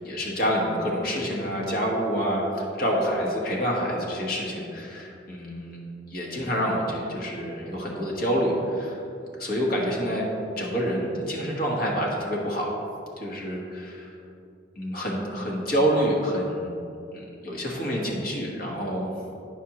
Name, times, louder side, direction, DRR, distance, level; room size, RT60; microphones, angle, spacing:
voice 1, 0.0-5.8 6.1-9.0 9.4-10.3 10.6-12.7 13.2-14.1 14.8-16.7 17.1-19.1, equal, 50° left, -2 dB, 1.3 m, -27 dB
9.1 x 5.9 x 2.9 m, 2.7 s
head